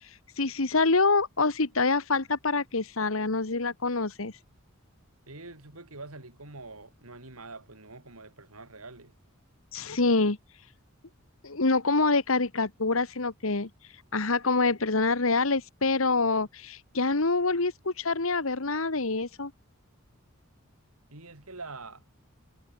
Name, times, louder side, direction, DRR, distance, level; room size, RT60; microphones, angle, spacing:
voice 1, 0.0-4.4 9.7-10.4 11.4-13.7 14.1-19.5, left 3 dB, 65° left, 1.6 m, -26 dB
voice 2, 5.3-9.1 21.1-22.0, right 3 dB, 80° right, 5.0 m, -45 dB
head